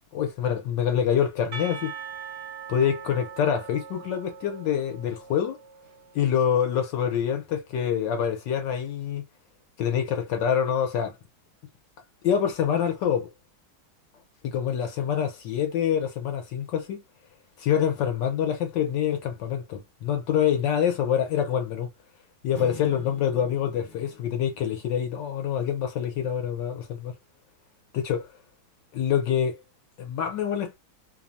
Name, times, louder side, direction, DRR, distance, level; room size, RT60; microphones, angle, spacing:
voice 1, 0.1-1.9 2.7-5.6 6.1-9.2 9.8-11.2 12.2-13.3 14.4-17.0 17.6-21.9 22.4-27.1 27.9-28.3 28.9-29.6 30.0-30.8, left 8 dB, 70° left, 1.3 m, -26 dB
Percussion, 1.5-6.4, right 7 dB, 55° right, 0.7 m, -41 dB
sound 1, 22.5-25.3, left 3 dB, 30° left, 1.0 m, -45 dB
3.4 x 2.1 x 2.4 m
omnidirectional pair, 2.2 m